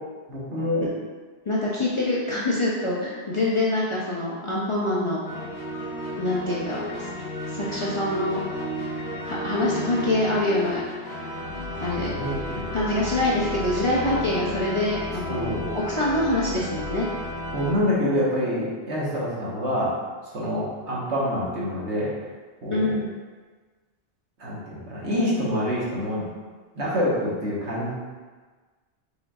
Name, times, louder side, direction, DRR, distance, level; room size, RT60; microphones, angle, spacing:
voice 1, 0.3-0.8 12.1-12.6 15.3-15.7 17.5-19.9 20.3-22.1 22.6-22.9 24.4-26.2 26.7-27.9, equal, 80° right, -6 dB, 1.5 m, -26 dB
voice 2, 1.5-5.2 6.2-7.1 7.5-8.4 9.2-10.8 11.8-12.1 12.7-15.4 15.7-17.1 22.7-23.1, left 1 dB, 35° left, -6 dB, 0.5 m, -25 dB
sound 1, 5.3-17.7, equal, 75° left, 1.4 m, -33 dB
5.1 x 4.0 x 2.4 m, 1.4 s
omnidirectional pair, 1.2 m